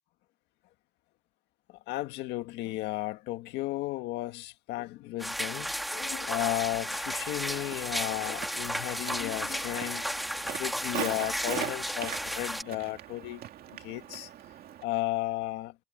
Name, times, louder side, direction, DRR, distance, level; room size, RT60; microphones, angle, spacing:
voice 1, 1.7-13.4 13.7-14.3 14.8-15.8, left 17 dB, 90° left, 1.8 m, -34 dB
sound 1, 5.2-12.6, equal, ahead, 2.0 m, -34 dB
Walk footsteps, 7.5-14.9, right 11 dB, 65° right, 2.5 m, -41 dB
cardioid pair, 110°, 17 cm